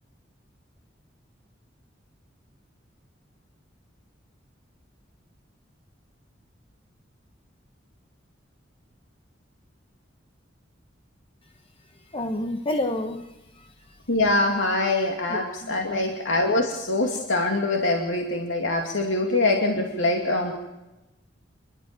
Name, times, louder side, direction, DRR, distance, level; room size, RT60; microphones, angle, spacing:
voice 1, 12.1-13.7 15.3-16.1, left 1 dB, 30° left, 5 dB, 1.2 m, -30 dB
voice 2, 14.1-20.5, left 2 dB, 85° left, 2 dB, 2.6 m, -24 dB
28.5 x 12.5 x 9.0 m, 1.0 s
head